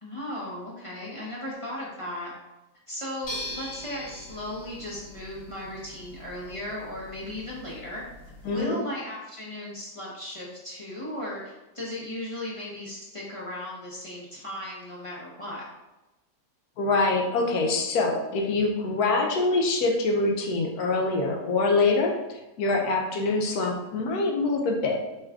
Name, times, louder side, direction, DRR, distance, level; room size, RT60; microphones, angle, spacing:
voice 1, 0.0-2.3 2.9-8.0 8.4-15.6, left 1 dB, 30° left, -7 dB, 0.7 m, -36 dB
sound 1, 3.2-8.6, left 1 dB, 60° left, 1.5 m, -42 dB
voice 2, 8.5-8.8 16.8-22.2 22.6-25.0, left 3 dB, 80° left, 1 dB, 1.1 m, -24 dB
4.6 x 3.1 x 2.4 m, 1.0 s
omnidirectional pair, 1.7 m